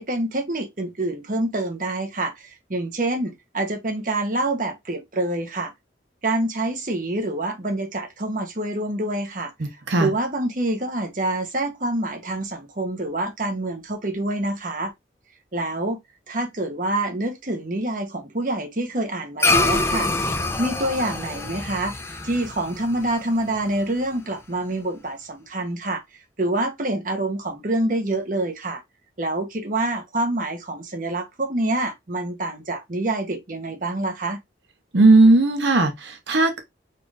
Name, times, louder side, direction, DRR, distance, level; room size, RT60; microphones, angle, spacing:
voice 1, 0.0-5.7 6.2-14.9 15.5-16.0 16.3-20.1 20.6-22.0 22.2-28.8 29.2-34.4, right 1 dB, 45° right, 1.0 m, -26 dB
sound 1, 19.4-24.0, left 2 dB, 15° left, 0.6 m, -25 dB
voice 2, 34.9-36.6, right 2 dB, 85° right, 0.9 m, -16 dB
4.3 x 2.6 x 4.8 m
head